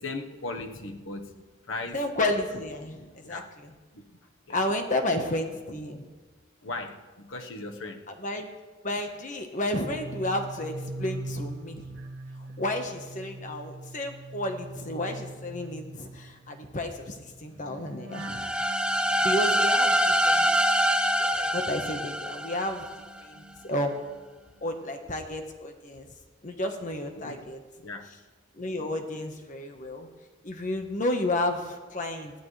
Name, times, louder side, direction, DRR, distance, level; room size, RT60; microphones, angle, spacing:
voice 1, 0.0-1.3 1.6-2.1 3.2-3.5 3.9-4.2 4.5-4.6 6.6-8.1 27.1-27.5 27.8-28.1, left 2 dB, 75° left, 4 dB, 1.4 m, -38 dB
voice 2, 1.9-3.4 4.5-6.1 8.2-8.5 8.8-11.9 12.6-18.5 19.2-20.5 21.2-22.8 23.2-24.0 24.6-26.1 26.4-27.6 28.6-30.1 30.4-32.3, left 1 dB, 40° left, 4 dB, 1.3 m, -31 dB
sound 1, 9.6-21.9 22.2-24.3 24.6-24.9, right 2 dB, 60° right, 1.0 m, -43 dB
sound 2, 18.1-23.0, equal, 5° right, 0.5 m, -25 dB
20.5 x 13.5 x 3.3 m, 1.3 s
head